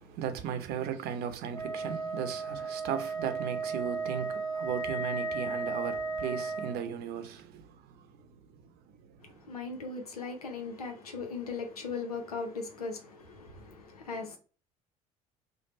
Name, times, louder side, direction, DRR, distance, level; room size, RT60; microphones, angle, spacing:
voice 1, 0.0-9.5, right 8 dB, 60° right, 0.7 m, -37 dB
Wind instrument woodwind instrument, 1.5-6.8, right 3 dB, 15° left, 0.9 m, -34 dB
voice 2, 9.2-14.4, left 4 dB, 90° left, 0.7 m, -39 dB
3.3 x 2.2 x 4.2 m
hypercardioid pair, 60°, 19 cm